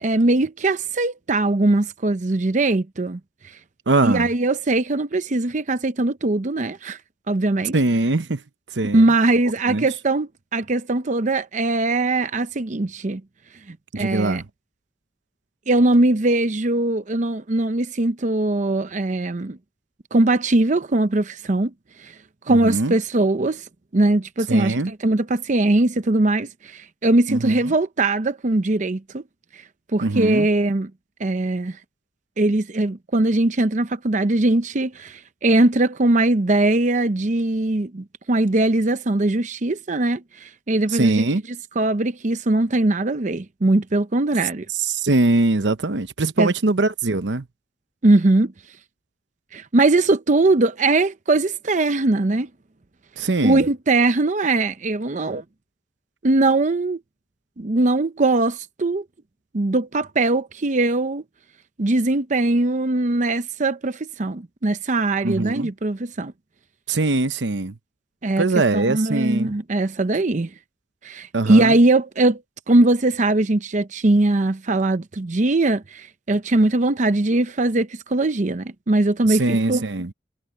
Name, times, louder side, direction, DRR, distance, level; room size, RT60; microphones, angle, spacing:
voice 1, 0.0-3.2 4.0-7.0 7.3-7.7 8.9-13.2 13.7-14.4 15.7-19.6 20.1-21.7 22.0-22.1 22.5-23.6 23.9-29.2 29.5-29.6 29.9-30.9 31.2-31.8 32.4-41.2 41.8-44.7 46.4-46.5 48.0-48.5 49.5-52.5 53.4-55.4 56.2-57.0 57.6-59.0 59.5-61.2 61.8-66.3 68.2-68.5 68.7-70.5 71.0-72.4 72.7-79.8, right 2 dB, 45° right, 0.7 m, -20 dB
voice 2, 3.9-4.3 7.7-8.4 8.7-9.1 9.7-9.9 13.9-14.5 22.5-23.0 24.5-24.9 27.3-27.5 30.0-30.5 40.9-41.4 44.7-47.5 53.2-53.7 65.2-65.7 66.9-67.8 68.4-69.6 71.3-71.8 79.2-80.1, right 2 dB, 80° right, 0.9 m, -22 dB
head